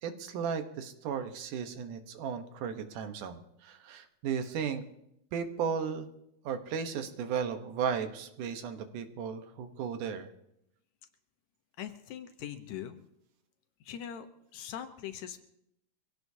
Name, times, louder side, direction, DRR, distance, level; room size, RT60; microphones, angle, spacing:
voice 1, 0.0-4.8 5.3-6.1 6.4-10.3, right 7 dB, 85° right, 7 dB, 2.7 m, -35 dB
voice 2, 11.8-13.0 13.8-14.3 14.5-15.4, left 10 dB, 75° left, 8 dB, 2.2 m, -41 dB
24.0 x 16.5 x 2.8 m, 0.78 s
omnidirectional pair, 3.5 m